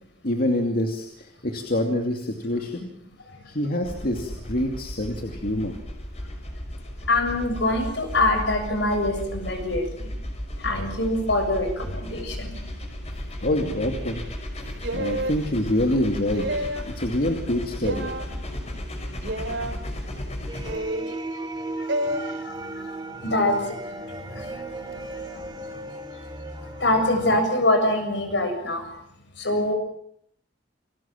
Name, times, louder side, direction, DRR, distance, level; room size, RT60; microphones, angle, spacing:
voice 1, 0.2-2.9 3.5-5.8 13.4-14.2 14.6-16.7 17.0-18.1, left 1 dB, 55° left, 3 dB, 2.7 m, -26 dB
sound 1, 3.8-20.8, left 1 dB, 35° left, 5.7 m, -35 dB
voice 2, 7.1-10.2 10.6-12.6 21.8-25.8 26.6-28.9 29.4-29.7, left 1 dB, 75° left, 6 dB, 7.2 m, -25 dB
sound 2, 14.8-15.4 16.3-16.9 17.8-18.3 19.2-19.7 20.6-21.1 21.9-22.2, right 1 dB, 75° right, 2.9 m, -29 dB
sound 3, 20.5-27.4, right 2 dB, 25° right, 2.7 m, -36 dB
29.5 x 21.5 x 7.4 m, 0.70 s
head